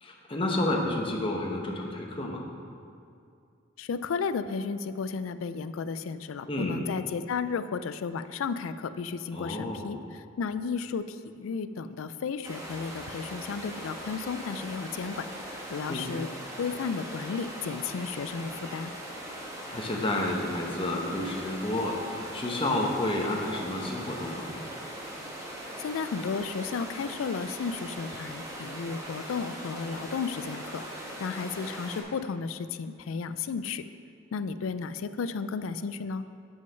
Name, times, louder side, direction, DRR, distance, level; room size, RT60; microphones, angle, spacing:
voice 1, 0.0-2.5 6.5-6.8 9.3-10.0 15.9-16.1 19.7-24.5, left 1 dB, 25° left, 0 dB, 0.9 m, -30 dB
voice 2, 3.8-10.0 10.4-15.3 15.7-16.3 16.6-18.9 25.8-30.8 31.2-33.8 34.3-36.2, left 5 dB, 85° left, 12 dB, 0.4 m, -33 dB
sound 1, 12.4-32.0, right 1 dB, 15° right, 1.3 m, -40 dB
7.3 x 6.3 x 5.6 m, 2.5 s
head